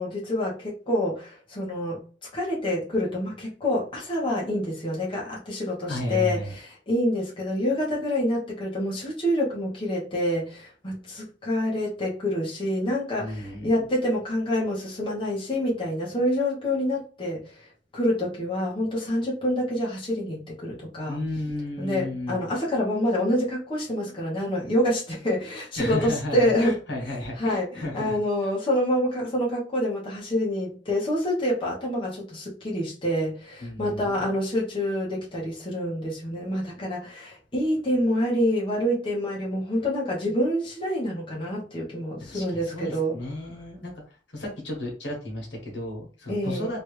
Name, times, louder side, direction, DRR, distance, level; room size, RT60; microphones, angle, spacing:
voice 1, 0.0-2.0 2.3-17.5 17.9-21.2 21.8-26.8 27.4-27.7 27.9-43.2 46.3-46.7, left 1 dB, 30° left, -5 dB, 1.0 m, -27 dB
voice 2, 5.9-6.5 13.2-13.7 21.1-22.4 25.8-28.2 33.6-34.3 42.2-46.8, left 1 dB, 80° left, 0 dB, 1.3 m, -33 dB
3.0 x 2.5 x 3.2 m, 0.39 s
head